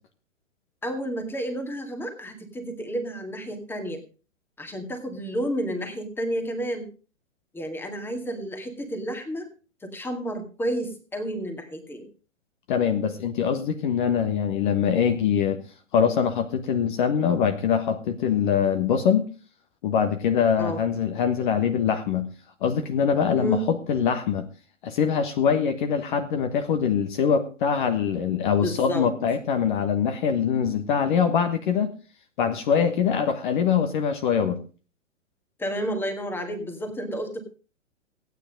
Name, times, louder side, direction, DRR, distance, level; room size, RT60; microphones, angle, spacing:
voice 1, 0.8-4.0 4.6-6.9 7.5-9.5 9.8-12.1 20.6-20.8 23.3-23.6 28.6-29.1 32.7-32.9 35.6-37.4, right 1 dB, 5° left, 5 dB, 2.0 m, -31 dB
voice 2, 12.7-15.6 15.9-19.3 19.8-22.3 22.6-24.5 24.8-31.9 32.4-34.6, left 7 dB, 40° left, 6 dB, 1.4 m, -23 dB
15.5 x 9.5 x 5.3 m, 0.35 s
figure-of-eight pair, 115°, 39 cm